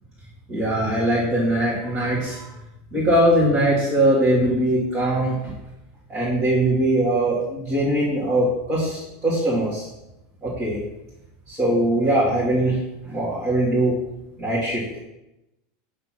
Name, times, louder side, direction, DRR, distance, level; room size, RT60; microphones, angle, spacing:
voice 1, 0.5-2.5 2.9-5.4 6.1-9.9 10.4-10.8 11.5-14.0 14.4-15.0, right 1 dB, 20° right, -10 dB, 1.6 m, -21 dB
7.8 x 2.9 x 5.8 m, 0.92 s
supercardioid pair, 180°, 0 cm